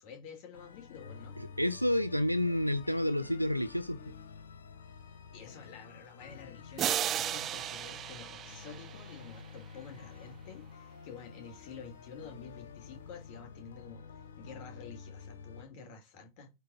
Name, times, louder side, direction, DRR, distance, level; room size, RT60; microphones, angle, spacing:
voice 1, 0.0-1.4 5.3-16.5, left 6 dB, 45° left, 3.5 m, -50 dB
sound 1, 0.5-15.6, left 6 dB, 65° left, 1.0 m, -50 dB
voice 2, 1.6-4.0, left 1 dB, 90° left, 0.4 m, -29 dB
sound 2, 6.8-9.5, right 11 dB, 30° right, 0.4 m, -35 dB
8.3 x 3.5 x 6.1 m
figure-of-eight pair, 90°, 0 cm